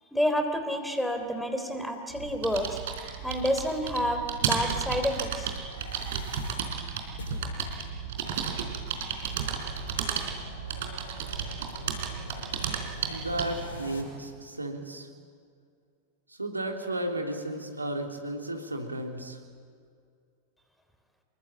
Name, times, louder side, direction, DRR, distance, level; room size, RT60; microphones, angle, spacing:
voice 1, 0.1-2.8 3.2-5.5, equal, ahead, 6 dB, 3.4 m, -29 dB
sound 1, 2.1-13.7, right 7 dB, 55° right, 4.2 m, -33 dB
sound 2, 5.5-14.0, left 2 dB, 65° left, 5.8 m, -44 dB
voice 2, 13.0-15.1 16.4-19.4, right 1 dB, 80° right, 3 dB, 3.2 m, -34 dB
27.0 x 22.0 x 8.8 m, 2.2 s
figure-of-eight pair, 90°, 0 cm